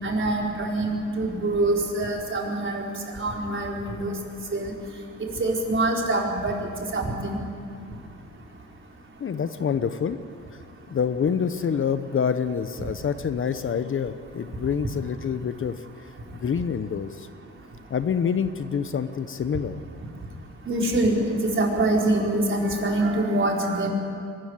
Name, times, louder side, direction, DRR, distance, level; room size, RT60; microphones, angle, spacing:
voice 1, 0.0-2.8 3.2-4.1 4.5-4.7 5.4-6.6 6.9-7.4 20.7-23.9, right 2 dB, 40° right, -1 dB, 4.7 m, -24 dB
voice 2, 9.2-10.2 10.9-15.8 16.4-17.3 17.9-19.8, left 7 dB, 45° left, 11 dB, 0.9 m, -26 dB
23.0 x 14.0 x 9.8 m, 2.5 s
cardioid pair, 90°, 30 cm